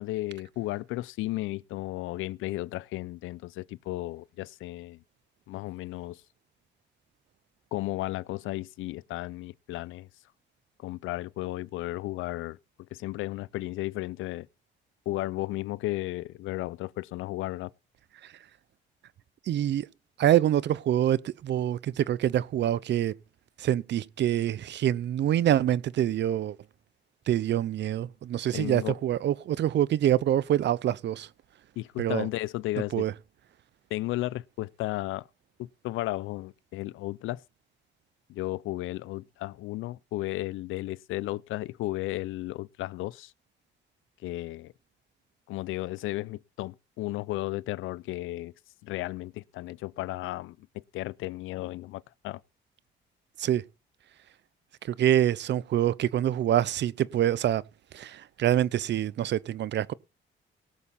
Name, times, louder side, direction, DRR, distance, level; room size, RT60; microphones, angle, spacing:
voice 1, 0.0-5.0 5.5-6.2 7.7-10.1 10.8-12.6 12.9-14.5 15.1-17.7 28.5-29.0 31.8-33.1 33.9-35.3 35.6-37.4 38.3-43.3 44.2-44.7 45.5-48.5 48.8-52.4, left 17 dB, 90° left, 0.5 m, -34 dB
voice 2, 19.5-19.9 20.2-23.1 23.6-26.5 27.3-31.3 32.0-32.3 32.9-33.1 53.4-53.6 54.9-57.6 57.9-59.9, right 11 dB, 65° right, 0.7 m, -25 dB
18.0 x 7.1 x 4.2 m
cardioid pair, 90°, 20 cm